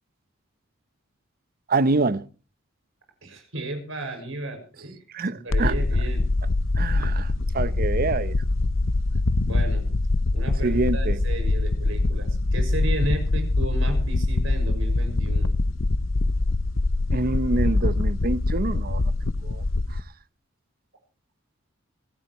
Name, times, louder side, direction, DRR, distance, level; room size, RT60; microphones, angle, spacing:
voice 1, 1.7-2.3 5.1-5.8 6.8-8.3 10.6-11.2 17.1-19.1 19.4-19.6, right 3 dB, 50° right, 0.8 m, -26 dB
voice 2, 3.2-5.0 5.3-6.3 9.4-9.9 10.3-15.6, right 2 dB, 75° right, 6.1 m, -34 dB
sound 1, 5.5-20.0, left 2 dB, 70° left, 0.8 m, -23 dB
25.5 x 13.5 x 3.1 m
head